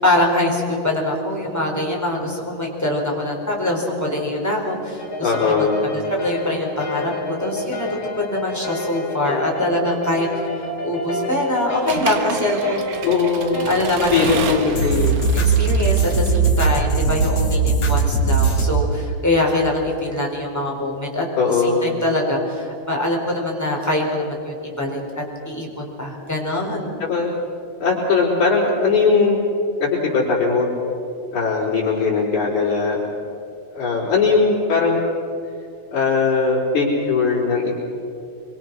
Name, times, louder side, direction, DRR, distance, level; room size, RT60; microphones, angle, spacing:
voice 1, 0.0-10.3 10.6-13.0 13.6-14.4 15.3-27.0, left 1 dB, 5° left, -2 dB, 4.4 m, -23 dB
sound 1, 5.0-18.7, right 3 dB, 50° left, 4.3 m, -23 dB
voice 2, 5.2-6.0 13.0-15.2 21.4-22.0 27.0-27.3 27.8-29.4 29.8-30.7 31.3-33.0 33.7-35.0 35.9-37.8, left 4 dB, 65° left, -9 dB, 5.7 m, -19 dB
Accelerating revving vroom / Mechanisms, 11.9-16.8, right 6 dB, 65° right, 2.4 m, -30 dB
26.0 x 24.5 x 6.2 m, 2.7 s
omnidirectional pair, 3.6 m